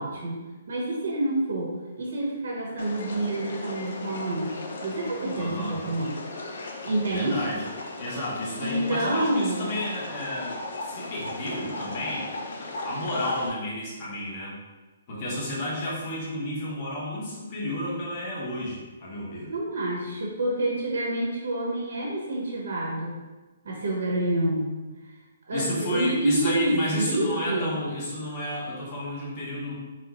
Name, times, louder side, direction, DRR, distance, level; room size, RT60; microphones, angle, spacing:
voice 1, 0.0-6.1 6.8-7.4 8.6-9.7 19.5-23.2 23.6-24.7 25.5-27.8, right 1 dB, 65° right, -2 dB, 1.1 m, -28 dB
sound 1, 2.8-13.5, left 2 dB, 55° left, 0.6 m, -37 dB
voice 2, 5.3-5.8 7.1-7.6 8.0-10.6 10.8-12.3 12.8-14.6 15.1-19.5 25.5-29.8, left 1 dB, 25° left, -5 dB, 1.0 m, -31 dB
4.2 x 2.3 x 4.3 m, 1.2 s
hypercardioid pair, 180°, 0 cm